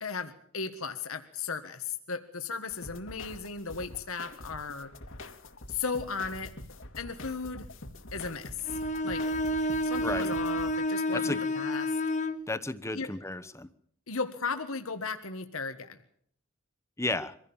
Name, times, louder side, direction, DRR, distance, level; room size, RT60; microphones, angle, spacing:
voice 1, 0.0-4.9 5.7-6.5 7.0-7.7 8.1-9.2 9.8-11.9 12.9-13.1 14.1-16.0, left 5 dB, 80° left, 8 dB, 1.6 m, -36 dB
sound 1, 2.7-10.7, left 2 dB, 65° left, 2.2 m, -45 dB
Bowed string instrument, 8.7-12.4, left 1 dB, 35° left, 1.1 m, -30 dB
voice 2, 10.0-10.3 11.1-11.4 12.5-13.7 17.0-17.3, left 2 dB, 15° left, 11 dB, 1.0 m, -33 dB
24.5 x 16.0 x 7.2 m, 0.66 s
head